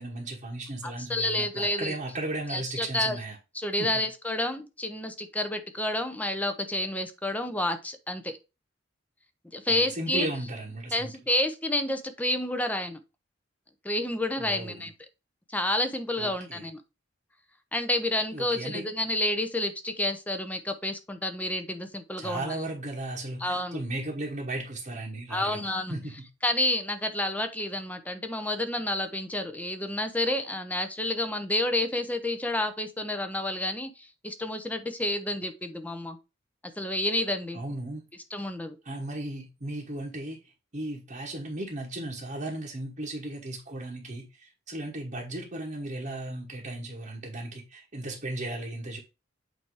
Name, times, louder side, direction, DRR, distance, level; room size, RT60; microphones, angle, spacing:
voice 1, 0.0-3.4 3.8-4.0 9.7-11.1 14.4-14.9 16.2-16.6 18.3-18.8 22.2-26.3 37.5-38.1 38.8-49.0, right 1 dB, 40° right, 1.3 m, -36 dB
voice 2, 0.8-2.0 2.5-3.2 3.5-8.3 9.5-10.3 10.9-13.0 13.8-14.9 15.5-16.8 17.7-22.6 23.4-23.8 25.3-25.9 26.4-36.2 36.8-37.6 38.3-38.8, left 1 dB, 10° left, 0.9 m, -29 dB
8.2 x 3.0 x 4.8 m
head